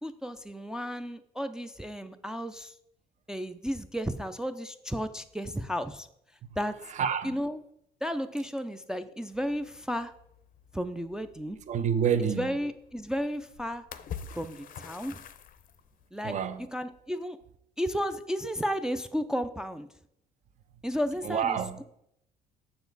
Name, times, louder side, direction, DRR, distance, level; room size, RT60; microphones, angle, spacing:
voice 1, 0.0-2.8 3.3-6.1 6.6-6.8 7.2-7.6 8.0-10.1 10.7-11.6 12.2-13.9 14.3-15.2 16.1-16.4 16.7-17.4 17.8-19.9 20.8-21.8, equal, 5° right, 0.4 m, -33 dB
voice 2, 6.9-7.4 11.7-12.5 16.2-16.7 21.2-21.8, right 7 dB, 45° right, 0.7 m, -28 dB
sound 1, 9.3-16.0, left 7 dB, 55° left, 0.6 m, -47 dB
7.0 x 6.6 x 3.9 m
cardioid pair, 110°, 17 cm